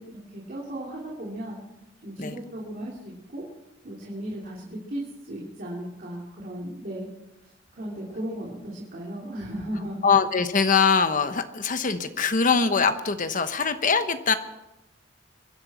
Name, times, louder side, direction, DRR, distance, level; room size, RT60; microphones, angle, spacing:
voice 1, 0.0-1.6 2.0-3.4 3.8-7.1 7.4-10.0, right 1 dB, 50° right, -4 dB, 3.1 m, -36 dB
voice 2, 10.0-14.3, left 5 dB, 45° left, 9 dB, 1.0 m, -22 dB
24.0 x 11.0 x 4.3 m, 0.97 s
head